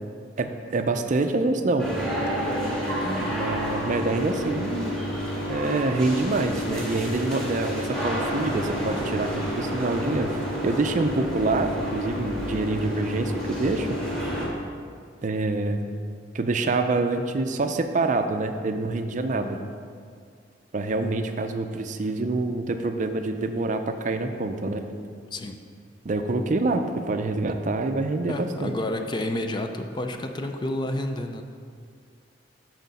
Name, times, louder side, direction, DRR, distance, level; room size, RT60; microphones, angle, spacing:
voice 1, 0.4-1.9 3.2-5.0 5.5-14.0 15.2-15.9 16.3-19.6 20.7-24.8 26.0-28.8, right 3 dB, 40° right, 7 dB, 0.4 m, -26 dB
sound 1, 1.8-14.5, equal, 5° left, 1.8 m, -29 dB
voice 2, 2.8-3.4 25.3-25.6 28.3-31.4, left 1 dB, 25° left, 5 dB, 0.4 m, -30 dB
8.0 x 6.4 x 4.1 m, 2.1 s
head